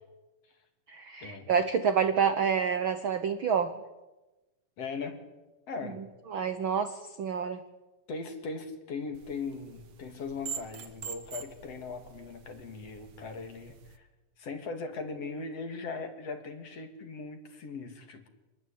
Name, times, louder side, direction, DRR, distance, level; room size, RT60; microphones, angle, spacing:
voice 1, 0.9-3.7 6.3-7.6, right 7 dB, 70° right, 10 dB, 1.2 m, -28 dB
voice 2, 4.8-5.2 5.7-6.0 8.1-14.1 14.4-18.3, left 4 dB, 50° left, 7 dB, 3.2 m, -39 dB
sound 1, 9.1-14.0, right 7 dB, 50° right, 1.8 m, -45 dB
26.5 x 20.5 x 8.7 m, 1.1 s
omnidirectional pair, 3.8 m